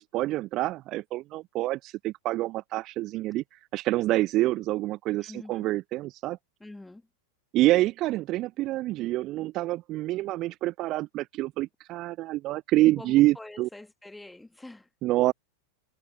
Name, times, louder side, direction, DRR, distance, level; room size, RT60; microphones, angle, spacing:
voice 1, 0.0-6.4 7.5-13.7 15.0-15.3, right 17 dB, 35° right, 0.5 m, -27 dB
voice 2, 5.2-5.7 6.6-7.0 13.0-14.9, left 2 dB, 5° left, 1.5 m, -45 dB
figure-of-eight pair, 90°, 0 cm